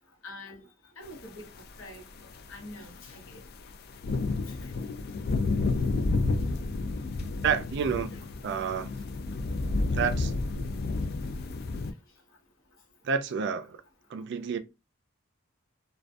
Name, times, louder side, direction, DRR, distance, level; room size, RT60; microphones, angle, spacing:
voice 1, 0.2-0.7 1.0-2.1 2.5-3.4 4.4-4.7 8.1-8.2, left 1 dB, 80° left, 0.8 m, -46 dB
sound 1, 1.6-1.7 2.2-11.9, left 3 dB, 50° left, 0.3 m, -30 dB
voice 2, 7.4-8.2 8.4-8.9 9.9-10.3 13.0-13.8 14.1-14.6, right 6 dB, 60° right, 0.3 m, -29 dB
2.5 x 2.2 x 2.2 m
head